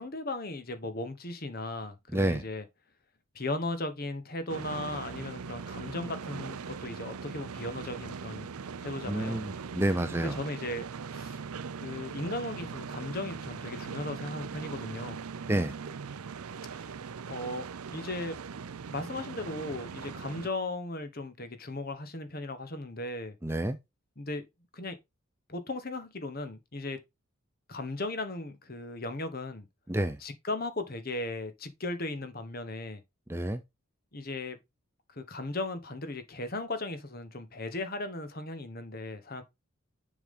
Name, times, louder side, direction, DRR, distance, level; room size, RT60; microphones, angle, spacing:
voice 1, 0.0-2.7 3.3-8.5 8.8-9.4 10.2-10.8 11.1-11.4 11.8-15.2 16.7-16.9 17.3-17.7 17.9-18.4 18.9-23.4 24.2-24.5 24.7-25.0 25.5-27.0 27.7-29.7 30.2-33.0 34.1-34.6 35.2-39.4, left 2 dB, 45° left, 1.2 m, -37 dB
voice 2, 2.1-2.4 9.1-10.3 15.5-15.7 23.4-23.8 29.9-30.2 33.3-33.6, right 1 dB, 10° right, 0.6 m, -29 dB
sound 1, 4.5-20.5, right 5 dB, 85° right, 0.6 m, -40 dB
7.0 x 5.4 x 3.7 m
head